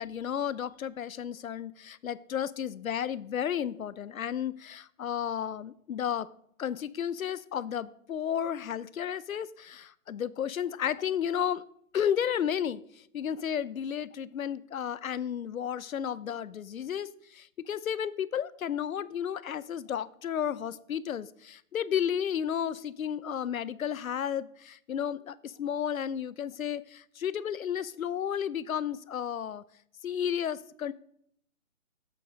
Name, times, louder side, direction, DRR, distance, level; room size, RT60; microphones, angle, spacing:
voice 1, 0.0-6.3 6.6-11.6 11.9-12.8 13.1-29.6 30.0-30.9, left 9 dB, 75° left, 19 dB, 0.6 m, -32 dB
8.2 x 7.9 x 5.1 m, 0.68 s
hypercardioid pair, 170°, 42 cm